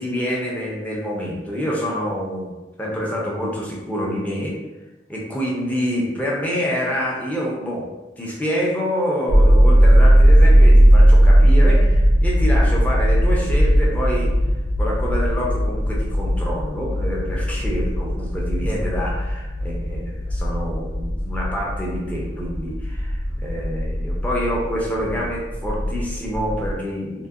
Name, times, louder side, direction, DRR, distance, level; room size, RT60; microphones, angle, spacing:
voice 1, 0.0-2.5 2.8-4.6 5.1-7.8 8.2-14.3 14.8-27.3, equal, 10° left, -4 dB, 0.5 m, -27 dB
sound 1, 9.3-23.1 23.4-24.4, equal, 50° right, 0.4 m, -17 dB
sound 2, 11.7-26.8, equal, 50° left, 0.7 m, -29 dB
3.6 x 2.1 x 2.4 m, 1.1 s
head